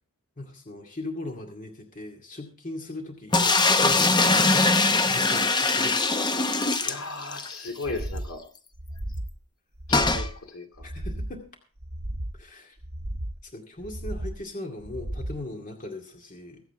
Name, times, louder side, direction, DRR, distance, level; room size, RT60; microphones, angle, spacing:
voice 1, 0.4-6.0 7.6-7.7 10.8-11.4 12.3-12.8 13.4-16.6, left 2 dB, 35° left, 2 dB, 2.2 m, -39 dB
sound 1, 3.3-7.5 7.8-7.9 8.2-8.3 9.9-10.3, left 3 dB, 20° left, 0.8 m, -22 dB
voice 2, 6.8-8.4 9.9-10.9, left 3 dB, 70° left, 5 dB, 2.6 m, -36 dB
sound 2, 7.8-8.3 8.7-9.3 9.7-10.3 10.8-11.4 11.8-12.4 12.8-13.4 13.8-14.4 14.8-15.4, right 1 dB, 50° right, 2.0 m, -34 dB
24.0 x 8.0 x 3.5 m, 0.39 s
head